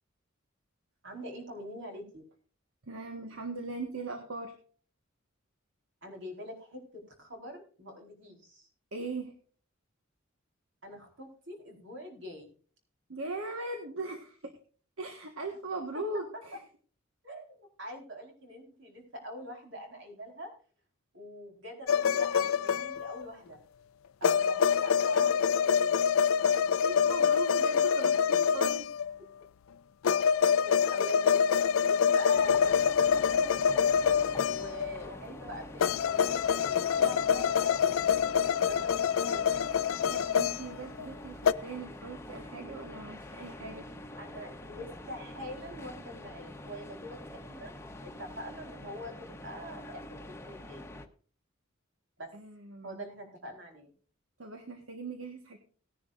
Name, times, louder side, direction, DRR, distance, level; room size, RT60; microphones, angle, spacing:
voice 1, 1.0-2.2 6.0-8.7 10.8-12.5 17.2-20.5 21.1-23.6 24.2-26.1 30.5-33.9 34.4-39.6 44.2-47.7 48.0-50.9 52.2-52.3 52.8-53.9, equal, 65° right, 3 dB, 4.2 m, -45 dB
voice 2, 2.8-4.5 8.9-9.3 13.1-14.5 15.0-16.6 26.8-28.9 40.1-43.9 52.3-53.0 54.4-55.6, right 2 dB, 85° right, 4 dB, 1.4 m, -39 dB
sound 1, 21.9-23.2 24.2-29.1 30.0-35.0 35.8-41.1 41.4-41.5, left 7 dB, 80° left, 0.4 m, -26 dB
sound 2, 32.3-51.1, left 1 dB, 15° left, 1.0 m, -46 dB
18.0 x 10.5 x 2.5 m, 0.43 s
head